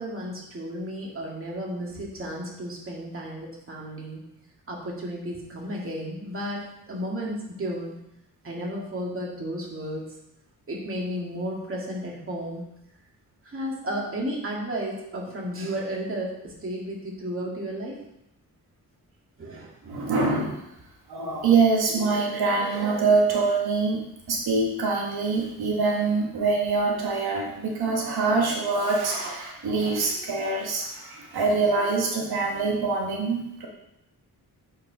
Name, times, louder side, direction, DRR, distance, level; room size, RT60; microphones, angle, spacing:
voice 1, 0.0-4.2 4.7-7.9 8.4-10.1 10.7-12.6 13.4-18.0 19.4-20.1 26.9-27.0, equal, 35° right, -3 dB, 2.0 m, -33 dB
voice 2, 19.9-20.6 21.1-33.7, right 4 dB, 90° right, -1 dB, 1.6 m, -24 dB
8.6 x 4.7 x 5.0 m, 0.81 s
wide cardioid pair, 150°, 37 cm